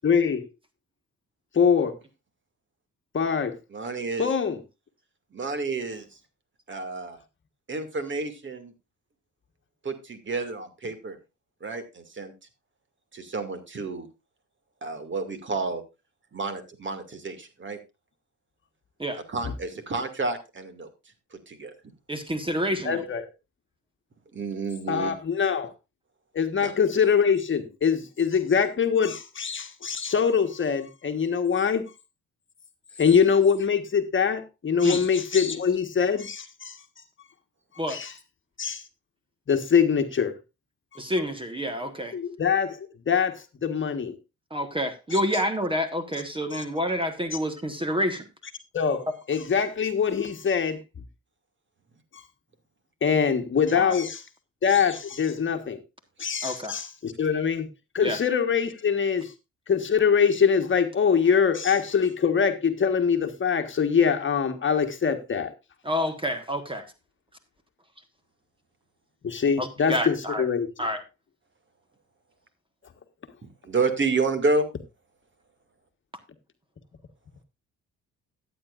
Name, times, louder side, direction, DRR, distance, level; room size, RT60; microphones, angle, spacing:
voice 1, 0.0-0.4 1.5-1.9 3.1-3.6 4.2-4.6 22.8-23.3 24.9-25.7 26.3-31.9 33.0-36.7 37.9-38.1 38.6-38.8 39.5-40.3 42.1-44.1 45.1-45.2 46.5-46.6 48.7-50.8 53.0-54.2 54.6-55.8 56.2-57.7 57.9-59.3 59.7-65.5 69.2-70.7, left 6 dB, 40° left, 1.4 m, -23 dB
voice 2, 3.7-4.3 5.3-6.1 6.7-7.2 7.7-8.7 9.8-11.2 11.6-12.3 13.1-14.1 14.8-15.8 16.3-17.8 19.1-20.9 21.5-21.7 24.3-25.1 26.6-26.7 73.6-74.6, right 3 dB, 40° right, 2.3 m, -30 dB
voice 3, 22.1-23.0 34.8-35.0 37.8-38.0 41.0-42.1 44.5-48.2 53.7-53.9 56.4-56.8 58.0-58.2 65.8-66.8 69.6-70.5 70.8-71.0, equal, 15° right, 1.5 m, -28 dB
14.0 x 9.2 x 2.5 m
cardioid pair, 90°, 30 cm